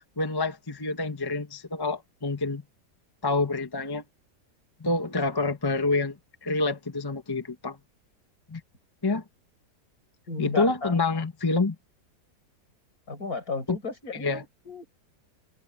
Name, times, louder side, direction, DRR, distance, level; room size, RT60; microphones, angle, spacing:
voice 1, 0.2-2.6 3.2-4.0 4.8-6.2 6.4-7.8 8.5-8.6 9.0-9.2 10.4-11.7 13.7-13.8 14.1-14.4, left 3 dB, 15° left, 1.1 m, -27 dB
voice 2, 10.3-10.9 13.1-14.8, left 3 dB, 60° left, 5.9 m, -34 dB
omnidirectional pair, 1.7 m